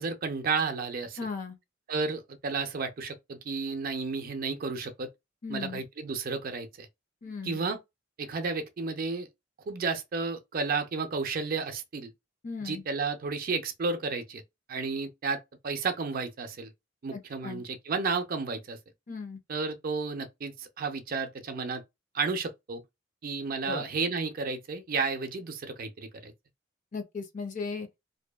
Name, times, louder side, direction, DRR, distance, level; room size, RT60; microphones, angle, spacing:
voice 1, 0.0-1.2 1.9-5.1 5.5-6.9 7.4-7.8 8.2-9.3 9.7-12.1 12.6-14.4 14.7-16.7 17.0-18.8 19.5-21.8 22.1-22.8 23.2-26.3, right 4 dB, 50° right, 0.4 m, -32 dB
voice 2, 1.2-1.6 5.4-5.8 7.2-7.6 12.4-12.8 17.1-17.6 19.1-19.4 23.6-23.9 26.9-27.9, left 4 dB, 45° left, 0.5 m, -36 dB
2.6 x 2.2 x 2.2 m
head